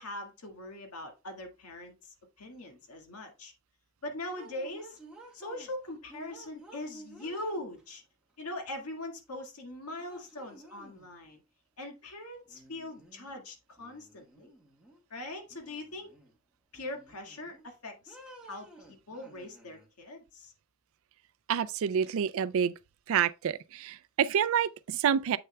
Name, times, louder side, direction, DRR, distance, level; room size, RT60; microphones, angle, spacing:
voice 1, 0.0-3.5 4.0-5.0 5.3-8.0 8.4-11.4 11.8-14.5 15.1-16.1 16.7-18.2 18.4-20.5, left 1 dB, 90° left, 1.8 m, -41 dB
sound 1, 4.3-5.7 6.1-8.0 9.4-9.5 10.0-11.1 12.5-13.4 13.8-15.0 15.5-16.4 16.7-17.7 18.1-19.9, right 1 dB, 5° right, 1.6 m, -53 dB
voice 2, 21.5-22.7 23.1-25.4, right 8 dB, 65° right, 0.3 m, -28 dB
7.8 x 6.5 x 2.2 m
head